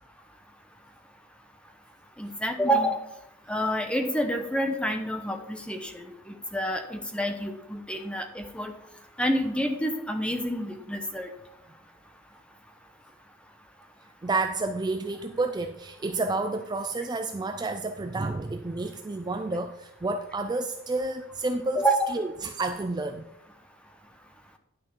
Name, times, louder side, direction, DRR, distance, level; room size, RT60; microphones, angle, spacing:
voice 1, 2.2-3.0 3.5-6.1 6.5-8.7 9.2-11.3 21.8-22.1, equal, 5° left, 5 dB, 0.9 m, -28 dB
voice 2, 14.2-21.8 22.1-23.2, right 2 dB, 20° right, 7 dB, 0.4 m, -30 dB
10.5 x 6.0 x 4.5 m, 0.85 s
head